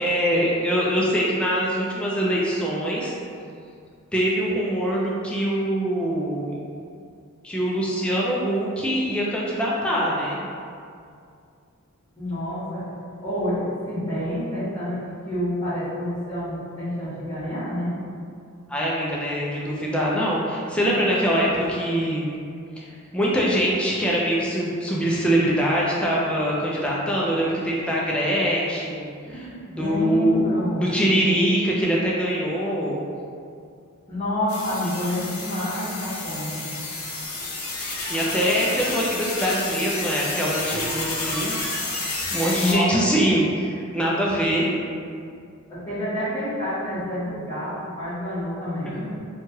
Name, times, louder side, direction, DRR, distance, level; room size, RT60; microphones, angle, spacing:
voice 1, 0.0-3.1 4.1-6.6 7.4-10.4 18.7-22.3 22.8-22.9 23.1-30.5 30.8-33.0 38.1-41.6 42.3-44.7, equal, 5° left, -5 dB, 0.3 m, -23 dB
voice 2, 12.2-12.9 13.2-17.9 29.3-30.9 34.1-36.7 42.6-43.0 45.7-49.2, left 1 dB, 25° left, -17 dB, 1.0 m, -28 dB
sound 1, 34.5-42.7, left 2 dB, 75° left, 0.6 m, -30 dB
3.0 x 2.2 x 2.8 m, 2.3 s
head